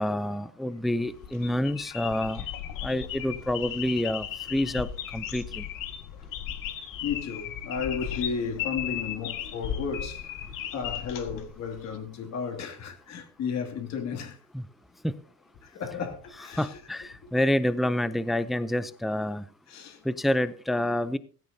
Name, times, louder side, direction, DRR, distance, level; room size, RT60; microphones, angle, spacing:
voice 1, 0.0-2.4 2.8-4.3 4.5-4.9 5.1-5.6 14.5-14.6 15.0-15.1 16.6-19.4 20.1-21.2, left 1 dB, ahead, 0.5 m, -27 dB
sound 1, 1.1-12.0, left 10 dB, 70° left, 2.0 m, -36 dB
voice 2, 6.5-10.4 10.7-14.4 15.6-16.8 17.2-17.3 19.7-20.1, left 6 dB, 50° left, 2.5 m, -34 dB
17.0 x 15.5 x 2.7 m
cardioid pair, 145°, 34 cm